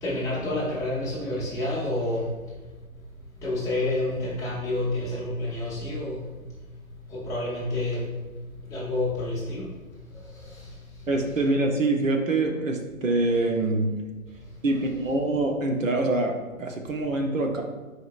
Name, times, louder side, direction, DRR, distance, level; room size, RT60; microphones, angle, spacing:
voice 1, 0.0-2.3 3.4-6.2 7.1-8.0 8.7-9.7, left 1 dB, 5° left, -8 dB, 1.1 m, -28 dB
voice 2, 11.1-14.0 14.6-17.6, right 2 dB, 65° right, 3 dB, 1.0 m, -25 dB
9.3 x 4.9 x 2.5 m, 1.2 s
figure-of-eight pair, 135°, 42 cm